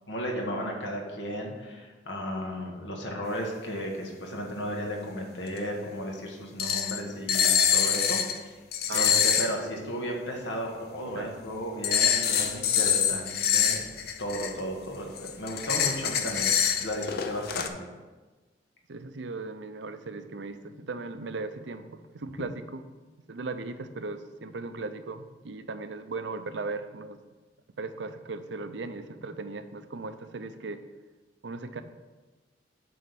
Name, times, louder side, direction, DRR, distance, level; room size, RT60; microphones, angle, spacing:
voice 1, 0.1-8.5 8.9-13.8 14.2-16.5 16.8-17.7, equal, 85° left, 0 dB, 1.7 m, -34 dB
sound 1, 5.6-5.7 6.6-7.0 7.3-8.4 8.7-9.5 11.8-14.6 15.1-17.7, left 8 dB, 60° left, 0.6 m, -25 dB
voice 2, 8.9-9.3 11.1-11.3 18.9-22.8 23.3-27.2 27.8-30.8 31.4-31.8, right 3 dB, 75° right, 10 dB, 0.6 m, -37 dB
8.5 x 3.9 x 6.8 m, 1.3 s
head